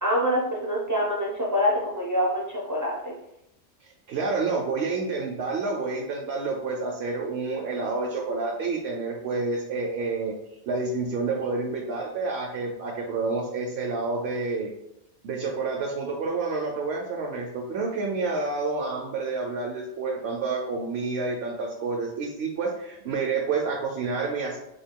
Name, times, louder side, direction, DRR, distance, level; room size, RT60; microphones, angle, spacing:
voice 1, 0.0-3.1, equal, 30° right, -4 dB, 0.4 m, -25 dB
voice 2, 4.1-10.3 10.7-14.7 15.2-24.6, right 3 dB, 75° right, 0 dB, 0.8 m, -29 dB
3.5 x 2.3 x 3.6 m, 0.83 s
omnidirectional pair, 1.1 m